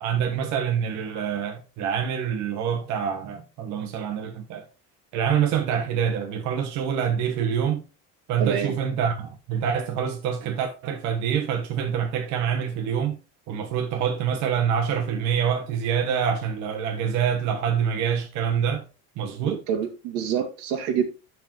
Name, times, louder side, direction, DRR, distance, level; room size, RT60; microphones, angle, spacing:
voice 1, 0.0-4.6 5.1-7.8 8.3-13.2 13.5-18.8 19.2-19.6, right 8 dB, 65° right, 1.3 m, -26 dB
voice 2, 8.4-8.8 19.4-21.0, right 8 dB, 85° right, 2.2 m, -27 dB
13.5 x 4.7 x 3.0 m
cardioid pair, 145°, 30 cm